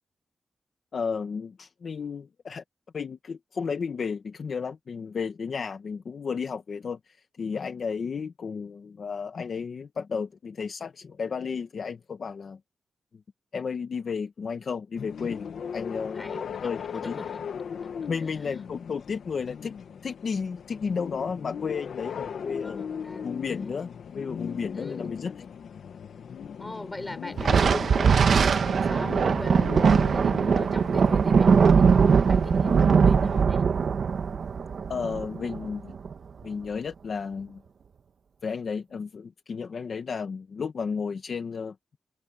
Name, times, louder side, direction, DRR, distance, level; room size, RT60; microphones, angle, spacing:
voice 1, 0.9-2.6 2.9-12.6 13.5-15.5 15.7-16.3 16.6-17.2 18.1-19.7 20.0-22.9 23.2-23.9 24.1-25.3 34.9-35.9 36.4-37.6 38.4-41.7, left 5 dB, 50° left, 1.3 m, -33 dB
sound 1, 15.0-33.4, left 7 dB, 75° left, 1.2 m, -38 dB
voice 2, 15.8-17.4 17.8-17.9 18.2-18.5 22.2-23.9 24.7-25.1 26.6-33.7, left 2 dB, 15° left, 6.3 m, -41 dB
Thunder, 27.4-36.1, right 6 dB, 60° right, 1.1 m, -21 dB
wide cardioid pair, 150°, 0 cm